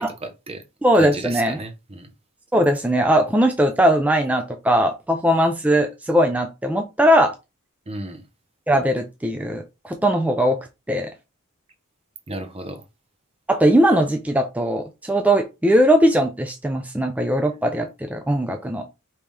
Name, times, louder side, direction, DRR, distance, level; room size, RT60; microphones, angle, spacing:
voice 1, 0.0-0.6 0.9-2.1 7.9-8.2 12.3-12.8, right 2 dB, 25° right, 0.8 m, -33 dB
voice 2, 0.8-1.6 2.5-7.3 8.7-10.6 10.9-11.1 13.5-18.8, equal, 5° right, 0.4 m, -19 dB
5.2 x 3.0 x 3.3 m
head